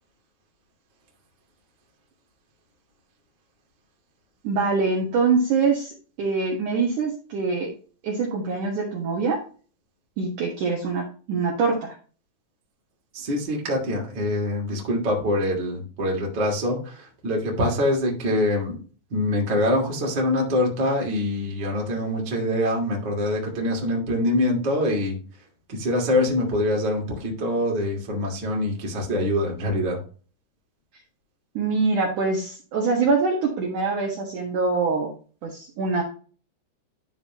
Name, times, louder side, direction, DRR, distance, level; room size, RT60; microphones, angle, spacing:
voice 1, 4.4-5.9 6.2-7.7 8.0-9.4 10.2-11.9 31.5-35.1 35.4-36.0, right 4 dB, 75° right, -1 dB, 1.8 m, -24 dB
voice 2, 13.1-18.8 19.1-25.2 25.7-30.0, left 1 dB, 35° right, -1 dB, 1.7 m, -24 dB
12.5 x 4.6 x 2.9 m, 0.39 s
omnidirectional pair, 5.9 m